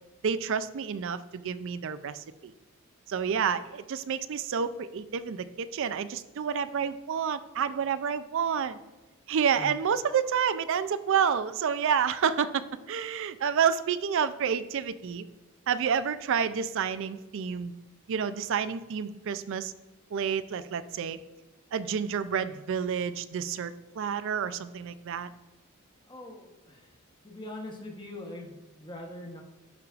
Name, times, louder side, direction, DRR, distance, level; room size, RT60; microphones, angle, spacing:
voice 1, 0.2-2.5 3.1-8.8 9.3-15.2 15.7-17.7 18.1-19.7 20.1-21.2 21.7-25.3, right 7 dB, 60° right, 14 dB, 0.4 m, -29 dB
voice 2, 26.1-26.8 27.2-29.4, left 1 dB, 20° left, 1 dB, 1.0 m, -42 dB
11.5 x 4.7 x 2.4 m, 1.1 s
head